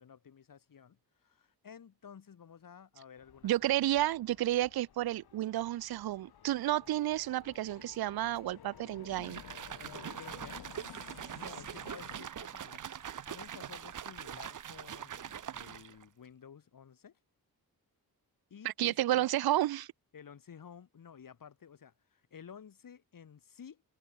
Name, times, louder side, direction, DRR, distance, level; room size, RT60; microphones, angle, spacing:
voice 1, 0.0-3.5 9.8-17.2 18.5-19.3 20.1-23.8, left 7 dB, 60° left, 2.8 m, -53 dB
sound 1, 3.2-12.2, left 9 dB, 75° left, 2.4 m, -54 dB
voice 2, 3.4-9.4 18.6-19.9, right 14 dB, 75° right, 0.5 m, -31 dB
sound 2, 6.7-15.3, right 3 dB, 25° right, 7.0 m, -74 dB
sound 3, 9.2-16.0, right 9 dB, 55° right, 0.9 m, -43 dB
wide cardioid pair, 120°, 37 cm